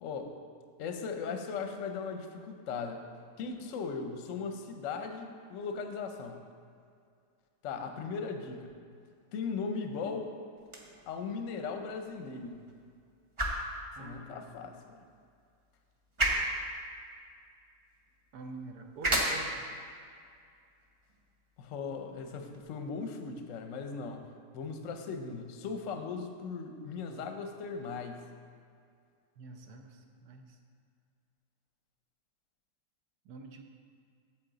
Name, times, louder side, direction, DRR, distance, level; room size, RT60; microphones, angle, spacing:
voice 1, 0.0-0.4 0.8-3.1 3.4-6.4 7.6-8.7 9.3-10.3 11.1-12.6 14.0-15.0 21.6-24.3 24.5-28.2, left 5 dB, 60° left, 5 dB, 0.9 m, -38 dB
sound 1, 10.6-22.6, right 1 dB, 30° right, 0.6 m, -37 dB
voice 2, 14.0-14.8 18.3-19.7 29.4-30.6 33.2-33.6, right 3 dB, 70° right, 4 dB, 1.2 m, -47 dB
8.6 x 7.5 x 3.9 m, 2.2 s
omnidirectional pair, 1.8 m